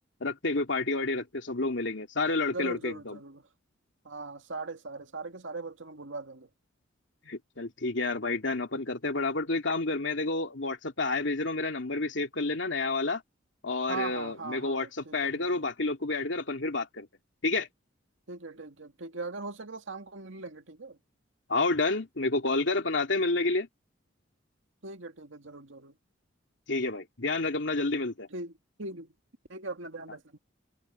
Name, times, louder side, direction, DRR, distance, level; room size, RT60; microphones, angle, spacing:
voice 1, 0.2-3.2 7.2-13.2 13.6-17.1 17.4-17.7 21.5-23.7 26.7-28.3, left 3 dB, 75° left, 2.4 m, -29 dB
voice 2, 2.5-3.5 4.0-6.5 13.9-15.6 18.3-21.0 24.8-26.0 28.3-28.5 28.8-29.1 29.5-30.4, right 3 dB, 85° right, 2.1 m, -40 dB
head